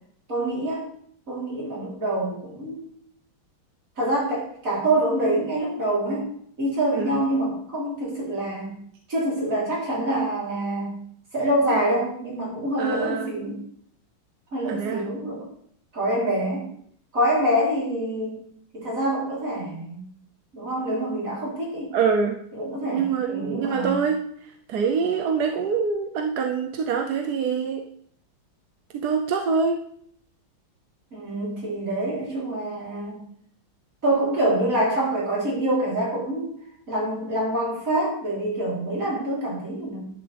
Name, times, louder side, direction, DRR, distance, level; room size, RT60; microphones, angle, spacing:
voice 1, 0.3-0.8 1.3-2.8 4.0-6.3 6.6-8.8 9.1-11.0 11.3-13.6 14.5-15.5 15.9-16.6 17.1-18.4 18.7-20.1 20.5-21.9 22.5-24.0 31.1-33.2 34.0-36.5 36.9-40.1, right 1 dB, 40° right, -5 dB, 4.1 m, -26 dB
voice 2, 12.8-13.3 14.7-15.0 21.9-22.4 22.9-24.2 24.7-27.8 29.0-29.8, right 5 dB, 65° right, 4 dB, 1.1 m, -25 dB
11.0 x 9.6 x 3.4 m, 0.67 s
omnidirectional pair, 2.3 m